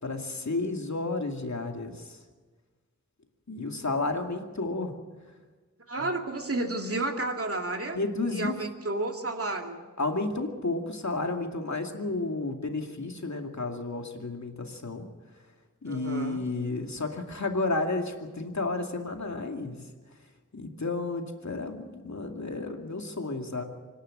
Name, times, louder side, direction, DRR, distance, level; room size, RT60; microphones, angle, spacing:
voice 1, 0.0-2.2 3.5-5.0 6.0-6.1 7.9-8.6 10.0-15.1 15.8-19.8 20.5-23.6, left 3 dB, 65° left, 4 dB, 2.4 m, -32 dB
voice 2, 5.9-8.0 8.3-9.8 15.9-16.4, right 2 dB, 45° right, 3 dB, 2.5 m, -31 dB
25.5 x 11.5 x 9.6 m, 1.4 s
wide cardioid pair, 45°, 31 cm